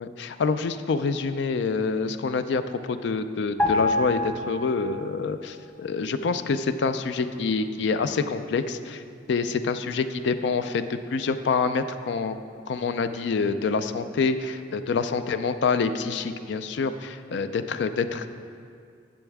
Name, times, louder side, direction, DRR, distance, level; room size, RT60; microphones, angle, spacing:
voice 1, 0.0-9.0 9.3-12.4 12.7-18.3, left 4 dB, 65° left, 10 dB, 0.4 m, -26 dB
sound 1, 3.6-5.2 5.5-5.7, left 2 dB, 15° left, 1.1 m, -27 dB
10.0 x 7.2 x 3.5 m, 2.3 s
head